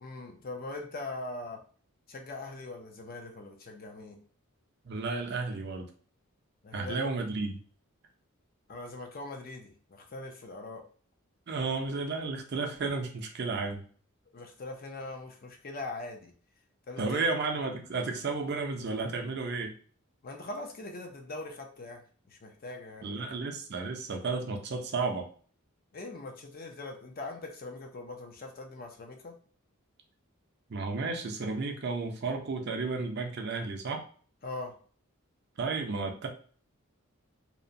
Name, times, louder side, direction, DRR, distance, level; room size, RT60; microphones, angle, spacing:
voice 1, 0.0-1.6 2.1-4.2 6.6-7.1 8.7-10.8 14.3-16.3 16.9-17.2 20.2-22.0 22.3-23.3 25.9-29.4 34.4-34.7, left 2 dB, 45° left, 3 dB, 0.5 m, -41 dB
voice 2, 4.9-5.9 6.7-7.5 11.5-13.8 17.0-19.7 23.0-25.2 30.7-34.0 35.6-36.3, right 3 dB, 50° right, 4 dB, 0.5 m, -32 dB
2.8 x 2.1 x 2.5 m, 0.44 s
head